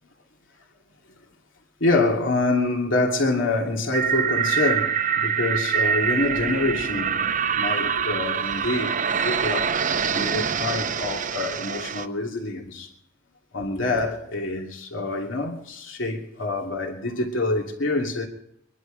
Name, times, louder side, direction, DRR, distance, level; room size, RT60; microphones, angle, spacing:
voice 1, 1.8-9.7 10.1-12.9 13.5-18.3, left 2 dB, 75° left, 2.6 m, -26 dB
sound 1, 3.9-12.1, right 7 dB, 40° right, 0.8 m, -25 dB
24.5 x 11.0 x 5.1 m
head